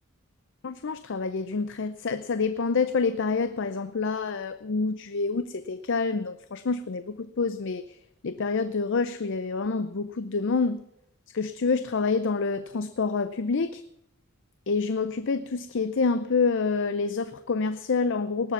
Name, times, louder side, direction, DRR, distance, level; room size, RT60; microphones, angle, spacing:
voice 1, 0.6-7.8 8.2-10.8 11.3-13.8 14.7-18.5, left 4 dB, 55° left, 12 dB, 0.5 m, -27 dB
19.0 x 7.4 x 5.9 m, 0.80 s
head